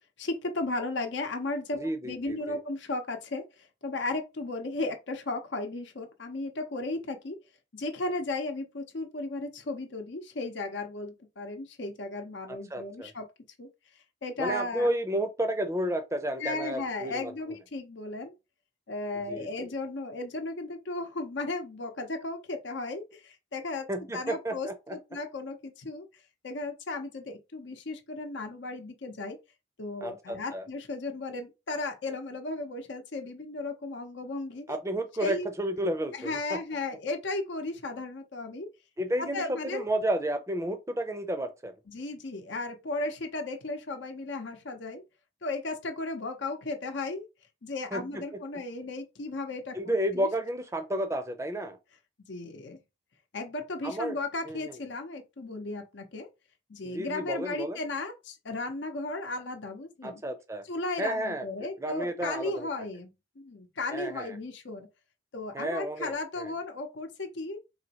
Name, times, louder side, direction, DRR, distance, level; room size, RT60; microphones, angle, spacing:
voice 1, 0.2-7.4 7.7-13.3 13.6-13.7 14.2-14.9 16.4-18.3 18.9-23.9 24.1-26.1 26.4-29.4 29.8-34.7 35.2-35.5 36.1-38.7 39.2-39.8 41.9-45.0 45.4-47.3 47.6-50.3 52.3-52.8 53.3-56.3 56.7-60.2 60.7-63.1 63.4-64.9 65.3-67.6, left 2 dB, 80° left, 0.8 m, -35 dB
voice 2, 1.8-2.6 12.7-13.1 14.4-17.3 19.3-19.7 23.9-25.0 30.0-30.6 34.7-36.6 39.0-41.7 47.9-48.2 49.7-51.8 53.8-54.2 54.5-54.8 56.8-57.8 60.0-60.6 61.0-61.4 61.8-62.7 63.9-64.4 65.5-66.5, right 1 dB, 15° right, 0.5 m, -32 dB
4.2 x 3.0 x 2.9 m
head